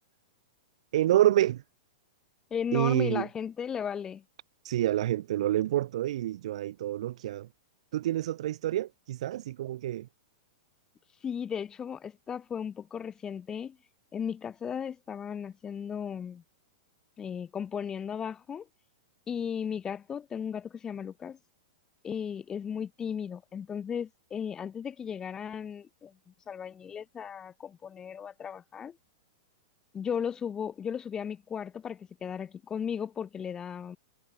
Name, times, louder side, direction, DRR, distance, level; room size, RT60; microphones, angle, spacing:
voice 1, 0.9-1.6 2.7-3.3 4.6-7.5 7.9-10.1, right 13 dB, 70° right, 0.3 m, -27 dB
voice 2, 2.5-4.2 11.2-13.8 14.1-16.4 17.2-18.7 19.3-21.4 22.0-26.1 26.5-29.0 29.9-34.0, left 7 dB, 20° left, 1.2 m, -36 dB
hypercardioid pair, 135°, 4 cm